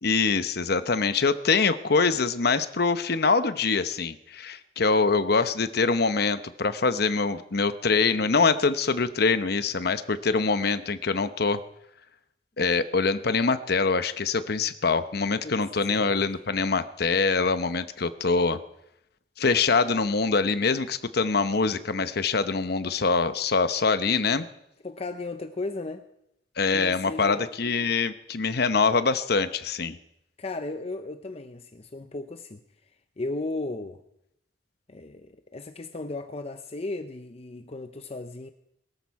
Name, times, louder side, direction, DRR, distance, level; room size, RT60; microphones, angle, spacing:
voice 1, 0.0-11.6 12.6-18.6 19.4-24.5 26.6-30.0, left 4 dB, 60° left, 0.9 m, -24 dB
voice 2, 15.4-16.2 24.8-26.0 26.7-27.5 30.4-32.6 33.2-34.0 34.9-38.5, left 2 dB, 35° left, 0.6 m, -35 dB
22.0 x 13.5 x 4.7 m
head